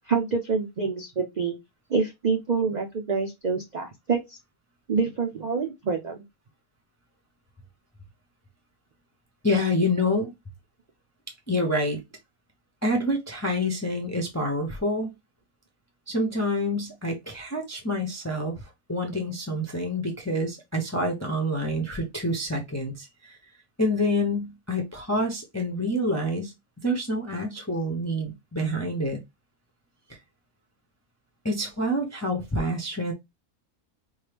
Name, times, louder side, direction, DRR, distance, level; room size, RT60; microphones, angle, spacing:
voice 1, 0.1-1.6 1.9-4.4 4.9-6.2, right 5 dB, 65° right, 0.4 m, -26 dB
voice 2, 9.4-10.3 11.5-12.0 12.8-15.1 16.1-23.4 23.8-26.5 26.8-29.2 31.4-33.1, left 1 dB, 25° left, 0.3 m, -27 dB
4.6 x 2.2 x 3.3 m
omnidirectional pair, 1.5 m